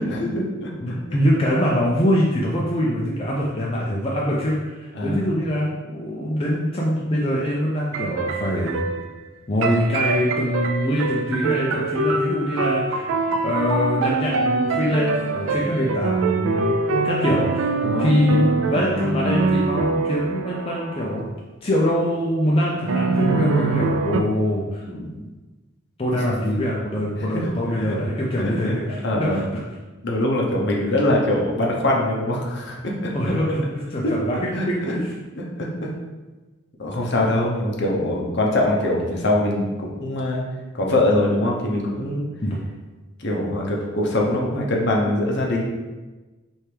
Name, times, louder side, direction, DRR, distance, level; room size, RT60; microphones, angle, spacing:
voice 1, 0.0-1.0 5.0-5.3 17.8-18.1 24.8-25.3 26.1-26.3 27.0-28.0 28.4-29.4 30.0-33.1 34.0-34.1 34.5-34.9 35.4-35.9 36.8-40.4 40.7-42.2 43.2-45.6, left 1 dB, 55° left, -2 dB, 0.8 m, -23 dB
voice 2, 0.8-8.8 9.5-13.1 13.4-16.8 17.0-17.7 18.0-21.3 21.6-24.8 26.0-29.4 33.1-35.0 42.4-42.6, equal, 25° left, -4 dB, 0.5 m, -23 dB
sound 1, 7.9-9.1 9.6-21.3 22.9-24.2, right 3 dB, 70° right, 0.4 m, -24 dB
4.4 x 3.4 x 3.3 m, 1.2 s
head